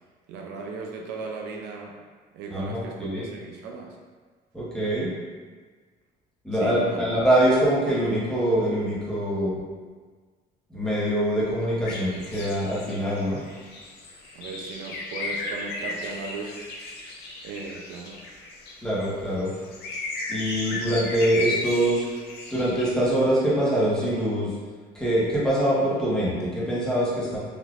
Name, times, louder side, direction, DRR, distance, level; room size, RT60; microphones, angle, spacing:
voice 1, 0.3-2.0 2.3-4.0 6.5-7.1 14.4-16.6 17.4-18.2, right 4 dB, 90° right, 0 dB, 0.5 m, -36 dB
voice 2, 2.5-3.2 4.5-5.1 6.4-9.6 10.7-13.4 18.8-19.5 20.3-22.0 22.5-24.5 24.9-27.4, right 1 dB, 5° left, -9 dB, 1.1 m, -24 dB
sound 1, 11.8-18.7 19.0-19.1 19.4-22.9, left 2 dB, 80° left, 0.5 m, -35 dB
3.5 x 2.7 x 2.4 m, 1.5 s
cardioid pair, 110°, 17 cm